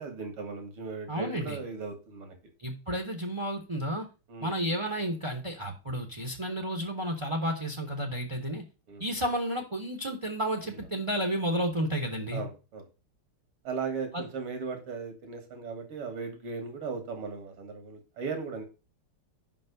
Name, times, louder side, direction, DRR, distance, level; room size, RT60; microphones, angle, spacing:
voice 1, 0.0-2.4 4.3-4.5 8.9-9.0 10.7-10.8 12.3-12.8 13.6-18.6, right 4 dB, 80° right, 6 dB, 2.7 m, -37 dB
voice 2, 1.1-1.6 2.6-4.1 4.4-8.6 9.0-12.4 14.1-14.2, equal, 25° right, 2 dB, 0.6 m, -31 dB
5.6 x 5.3 x 6.8 m, 0.32 s
omnidirectional pair, 2.4 m